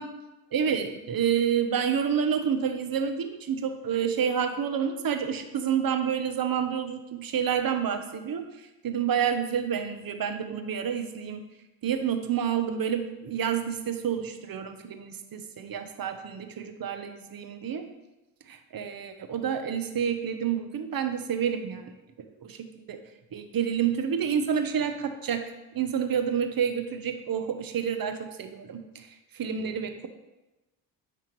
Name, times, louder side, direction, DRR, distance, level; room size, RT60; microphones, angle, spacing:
voice 1, 0.5-8.5 8.8-11.4 11.8-17.9 18.5-21.9 22.4-23.0 23.3-25.4 25.7-29.1 29.3-30.1, right 8 dB, 45° right, 7 dB, 1.0 m, -29 dB
9.3 x 3.6 x 4.6 m, 1.0 s
supercardioid pair, 70°, 49 cm